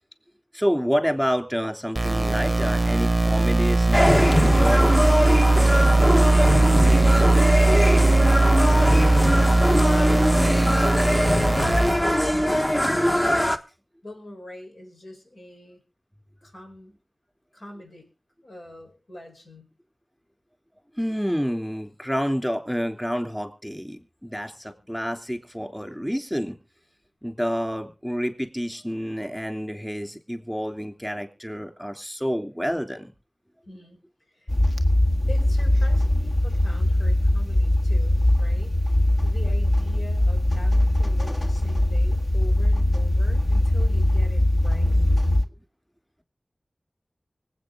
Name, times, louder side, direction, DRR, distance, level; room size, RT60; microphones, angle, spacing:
voice 1, 0.5-4.9 21.0-26.6 27.2-33.1, equal, 5° left, 5 dB, 3.1 m, -28 dB
sound 1, 1.9-11.9, right 2 dB, 35° right, 0.7 m, -19 dB
sound 2, 3.9-13.6, left 1 dB, 25° left, 1.2 m, -22 dB
voice 2, 6.0-7.8 9.7-13.2 14.0-15.8 16.4-17.0 17.5-18.1 18.4-19.7 24.8-25.0 33.7-34.0 34.3-34.5 35.3-38.8 39.2-45.3, left 1 dB, 75° left, 2 dB, 4.7 m, -44 dB
sound 3, 34.5-45.4, left 1 dB, 45° left, 1.6 m, -21 dB
25.0 x 8.5 x 3.9 m, 0.33 s
wide cardioid pair, 55°, 0 cm